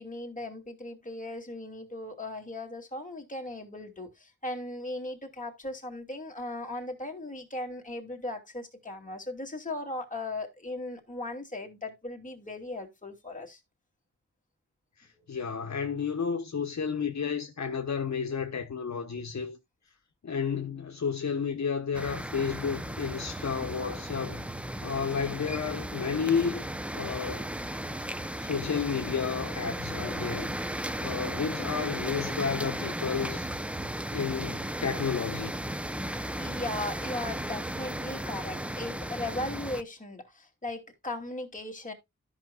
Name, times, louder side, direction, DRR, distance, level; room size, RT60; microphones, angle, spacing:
voice 1, 0.0-13.6 15.1-15.2 36.4-41.9, left 2 dB, 25° left, 2.7 m, -37 dB
voice 2, 15.0-19.6 20.2-24.5 24.8-27.5 28.4-30.5 31.0-33.5 34.1-35.6, left 6 dB, 65° left, 1.1 m, -32 dB
sound 1, 21.9-39.8, right 1 dB, 5° right, 0.6 m, -35 dB
13.5 x 5.9 x 2.3 m
wide cardioid pair, 90°, 30 cm